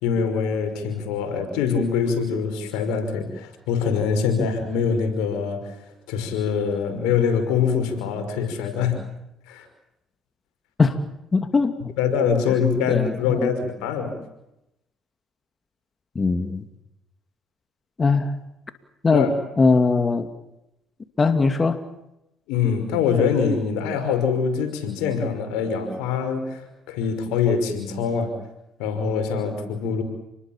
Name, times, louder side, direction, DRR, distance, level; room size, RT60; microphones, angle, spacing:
voice 1, 0.0-5.7 6.1-9.0 9.5-9.7 12.0-14.2 19.1-19.3 22.5-28.3 28.8-30.0, left 6 dB, 85° left, 7 dB, 5.5 m, -24 dB
voice 2, 11.3-11.7 12.9-13.5 16.2-16.6 18.0-18.3 19.0-19.3 19.6-20.3 21.2-21.8, left 4 dB, 35° left, 8 dB, 2.5 m, -20 dB
29.5 x 21.5 x 7.5 m, 0.88 s
supercardioid pair, 65°, 0 cm